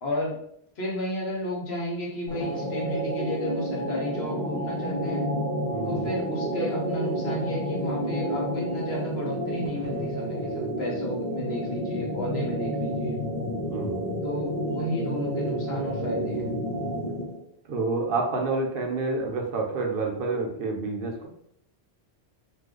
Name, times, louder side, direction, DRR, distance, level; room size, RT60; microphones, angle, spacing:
voice 1, 0.0-0.3 0.8-5.2 5.8-13.2 14.2-16.5, left 1 dB, 70° left, -2 dB, 1.1 m, -32 dB
sound 1, 2.3-17.4, equal, 20° right, 0.8 m, -30 dB
voice 2, 5.7-6.1 13.7-14.0 17.7-21.3, right 3 dB, 60° right, 2 dB, 0.8 m, -28 dB
2.5 x 2.3 x 3.5 m, 0.72 s
omnidirectional pair, 1.1 m